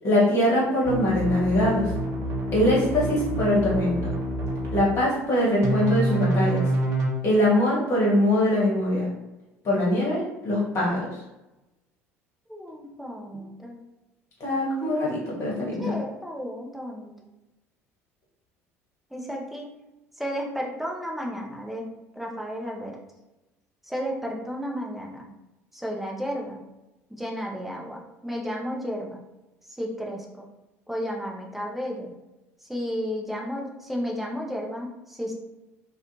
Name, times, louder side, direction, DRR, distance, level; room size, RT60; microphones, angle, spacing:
voice 1, 0.0-1.9 2.5-4.1 4.7-6.7 7.2-9.1 9.6-11.0 14.4-15.9, left 1 dB, 40° left, -5 dB, 1.2 m, -22 dB
sound 1, 0.8-4.8 5.6-7.1, right 1 dB, 40° right, 0.6 m, -27 dB
voice 2, 12.5-13.8 15.8-17.1 19.1-19.7 20.2-23.0 23.8-25.3 25.7-26.6 27.1-29.2 29.7-30.4 30.9-32.1 32.6-35.3, equal, ahead, -1 dB, 0.5 m, -33 dB
2.4 x 2.2 x 2.8 m, 0.99 s
figure-of-eight pair, 65°, 8 cm